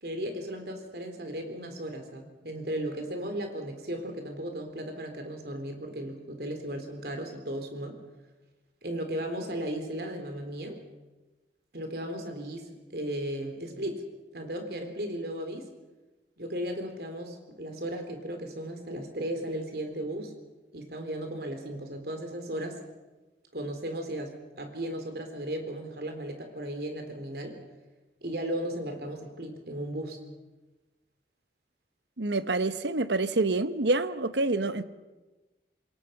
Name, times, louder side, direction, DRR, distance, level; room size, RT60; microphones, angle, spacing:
voice 1, 0.0-8.0 8.8-10.8 11.7-14.0 14.3-15.7 16.4-20.3 20.7-22.8 23.5-27.6 28.2-30.2, right 1 dB, 60° right, 5 dB, 3.9 m, -36 dB
voice 2, 32.2-34.8, right 2 dB, 80° right, 12 dB, 1.1 m, -27 dB
27.0 x 22.0 x 5.8 m, 1.1 s
head